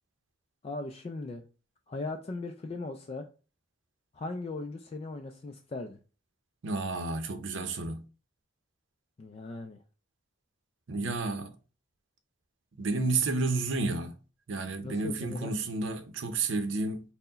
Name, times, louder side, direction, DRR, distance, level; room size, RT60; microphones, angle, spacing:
voice 1, 0.6-1.4 1.9-3.3 4.1-6.0 9.2-9.8 14.8-15.6, left 3 dB, 30° left, 0.3 m, -38 dB
voice 2, 6.6-8.0 10.9-11.5 12.8-14.1 14.5-17.0, right 3 dB, 80° right, 0.6 m, -31 dB
4.4 x 2.1 x 3.9 m
head